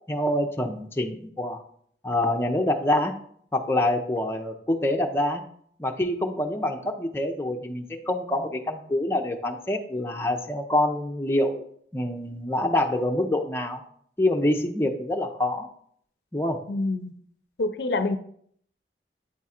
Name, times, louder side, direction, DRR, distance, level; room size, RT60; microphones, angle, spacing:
voice 1, 0.1-1.6 2.0-3.1 3.5-5.4 5.8-11.6 11.9-13.8 14.2-15.7 16.3-16.6, left 1 dB, 15° left, 2 dB, 0.5 m, -26 dB
voice 2, 16.7-17.1 17.6-18.2, left 2 dB, 70° left, 10 dB, 0.5 m, -26 dB
8.5 x 3.6 x 4.3 m, 0.64 s
head